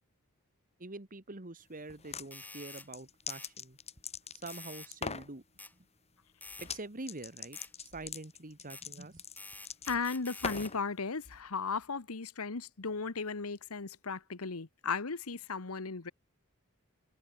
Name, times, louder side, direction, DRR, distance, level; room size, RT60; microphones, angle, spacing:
voice 1, 0.8-3.8 4.2-5.4 6.6-9.2, right 2 dB, 40° right, 1.9 m, -45 dB
sound 1, 1.9-2.3 2.8-4.6 4.9-5.3 6.6-6.8 7.1-10.8, left 5 dB, 30° left, 4.2 m, -41 dB
sound 2, 2.3-2.9 3.3-3.5 4.5-4.9 5.6-5.7 6.4-6.7 7.5-7.7 8.7-8.8 9.4-10.7, left 2 dB, 10° left, 4.5 m, -48 dB
voice 2, 9.9-16.1, left 4 dB, 75° left, 1.2 m, -36 dB
head